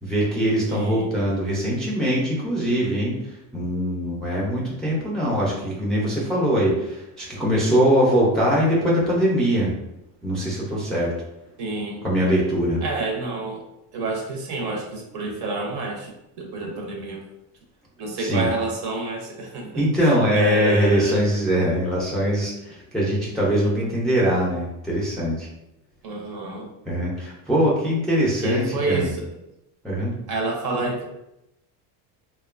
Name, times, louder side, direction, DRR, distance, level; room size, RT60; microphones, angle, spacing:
voice 1, 0.0-9.7 10.2-11.1 12.0-12.8 18.2-18.5 19.8-25.5 26.9-29.1 29.8-30.1, equal, ahead, -6 dB, 0.4 m, -22 dB
voice 2, 0.7-1.1 11.6-12.0 12.8-13.6 13.9-16.1 16.4-17.2 18.0-19.8 20.3-21.2 26.0-26.7 28.4-29.3 30.3-31.0, right 3 dB, 55° right, 2 dB, 0.7 m, -28 dB
2.8 x 2.2 x 2.4 m, 0.86 s
cardioid pair, 125°, 47 cm